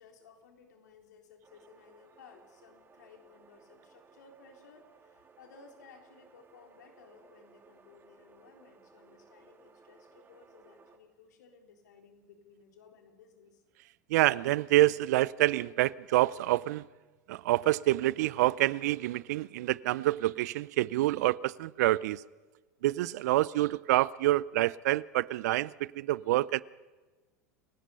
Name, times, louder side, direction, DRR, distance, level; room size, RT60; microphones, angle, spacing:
voice 1, 0.0-13.6, left 5 dB, 80° left, 3.7 m, -58 dB
sound 1, 1.4-11.0, right 4 dB, 25° right, 2.6 m, -60 dB
voice 2, 14.1-16.9 17.3-22.2 22.8-26.6, right 16 dB, 70° right, 0.6 m, -27 dB
29.0 x 17.0 x 5.5 m
hypercardioid pair, 90°, 9 cm